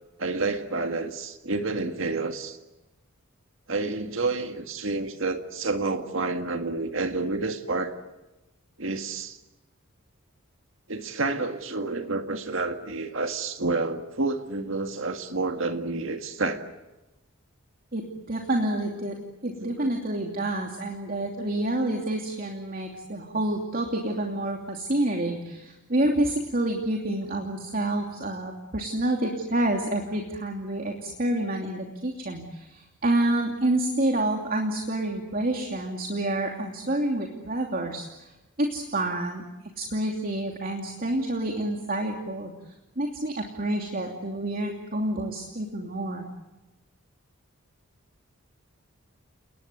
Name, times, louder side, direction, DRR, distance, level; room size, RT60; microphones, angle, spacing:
voice 1, 0.2-2.6 3.7-8.0 8.8-9.4 10.9-16.6 19.6-19.9, right 3 dB, 60° right, 7 dB, 1.9 m, -29 dB
voice 2, 17.9-38.3 38.6-39.4 39.8-42.5 43.0-46.3, right 1 dB, 40° right, 1 dB, 2.9 m, -28 dB
30.0 x 20.5 x 9.4 m, 1.0 s
head